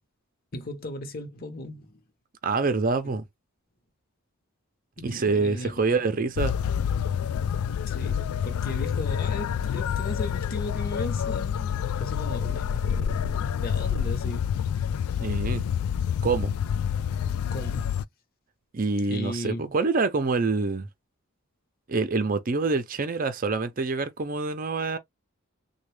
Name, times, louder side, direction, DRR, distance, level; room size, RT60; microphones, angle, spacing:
voice 1, 0.5-2.0 3.0-3.2 5.0-5.8 7.9-14.4 14.7-14.9 17.5-17.9 19.0-19.7, left 1 dB, 45° left, 0.9 m, -37 dB
voice 2, 2.4-3.3 5.0-6.5 15.2-15.6 16.2-16.5 18.7-20.9 21.9-25.0, right 4 dB, 40° right, 0.5 m, -26 dB
sound 1, 6.4-18.0, left 8 dB, 80° left, 0.3 m, -28 dB
3.6 x 2.2 x 3.2 m
head